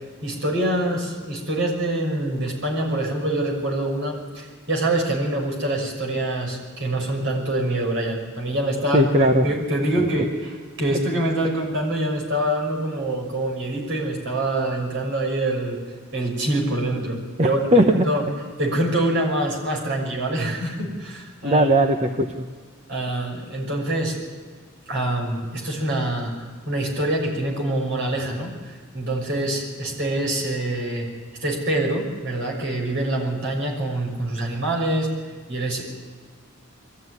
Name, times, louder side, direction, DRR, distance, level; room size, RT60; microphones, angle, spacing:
voice 1, 0.2-15.8 16.1-17.6 17.9-18.2 18.6-21.7 22.9-24.1 24.9-26.3 26.6-31.1 31.4-35.1 35.5-35.8, right 1 dB, 60° right, 0 dB, 6.3 m, -25 dB
voice 2, 8.9-9.5 17.4-18.0 21.4-22.5, right 1 dB, 30° right, 4 dB, 0.9 m, -18 dB
22.0 x 15.0 x 9.6 m, 1.5 s
head